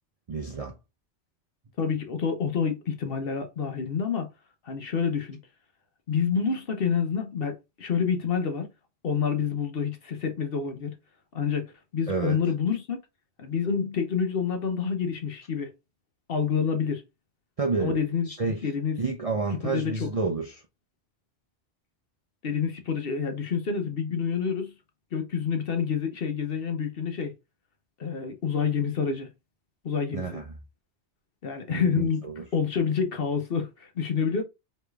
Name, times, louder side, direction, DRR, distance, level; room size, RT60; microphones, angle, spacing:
voice 1, 0.3-0.8 12.1-12.4 17.6-18.0 18.3-18.7 19.0-20.6 30.1-30.5 31.7-32.4, right 4 dB, 45° right, 0.5 m, -29 dB
voice 2, 1.8-4.3 4.7-5.4 6.1-8.7 9.0-10.9 11.3-13.0 13.4-15.7 16.3-17.0 17.8-18.3 18.6-19.0 19.6-20.1 22.4-24.7 25.1-27.3 28.0-29.3 29.8-30.3 31.4-32.3 32.5-34.4, left 6 dB, 55° left, 1.0 m, -28 dB
4.9 x 3.2 x 2.3 m
omnidirectional pair, 1.2 m